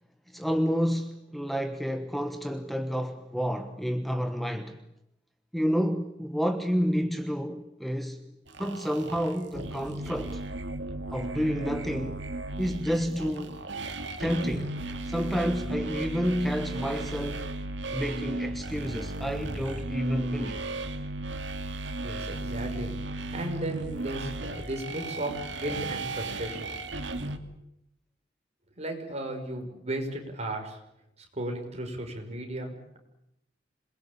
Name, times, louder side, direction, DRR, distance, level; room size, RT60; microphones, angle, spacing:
voice 1, 0.3-4.8 5.5-8.2 8.6-10.4 11.1-12.2 12.6-13.6 14.2-14.8 15.1-17.5 17.9-20.6, equal, ahead, 1.2 m, -29 dB
sound 1, 8.5-27.4, right 2 dB, 75° right, 2.3 m, -35 dB
voice 2, 22.0-22.9 23.3-26.7 28.8-30.8 31.3-32.7, right 1 dB, 40° right, 5.6 m, -35 dB
27.0 x 21.5 x 8.5 m
head